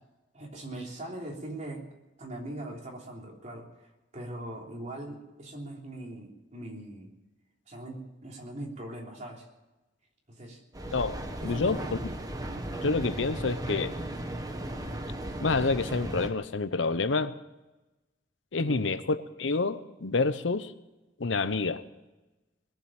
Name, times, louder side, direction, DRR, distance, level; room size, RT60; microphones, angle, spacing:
voice 1, 0.3-1.9 2.2-7.1 7.7-9.5 10.3-10.6 11.4-12.0 18.6-18.9, right 1 dB, 40° right, 0 dB, 3.3 m, -41 dB
Mechanical fan, 10.7-16.3, right 1 dB, 20° right, 1.3 m, -36 dB
voice 2, 10.9-12.0 12.8-13.9 15.4-17.3 18.5-20.7 21.2-21.8, left 3 dB, 85° left, 13 dB, 0.8 m, -28 dB
20.5 x 7.7 x 8.8 m, 1.1 s
head